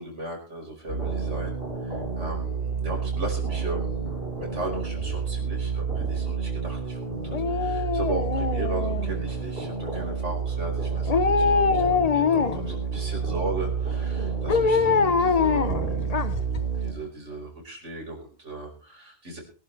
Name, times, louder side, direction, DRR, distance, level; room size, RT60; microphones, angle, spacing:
voice 1, 0.0-1.5 1.8-4.1 4.4-16.3 16.8-19.4, right 2 dB, 85° right, 0 dB, 5.5 m, -36 dB
sound 1, 0.9-16.9, right 5 dB, 55° right, 4.5 m, -29 dB
Dog, 7.3-9.4 11.1-12.8 14.5-16.6 16.9-17.0, left 5 dB, 35° left, 0.8 m, -23 dB
23.0 x 11.5 x 3.4 m, 0.37 s
omnidirectional pair, 1.2 m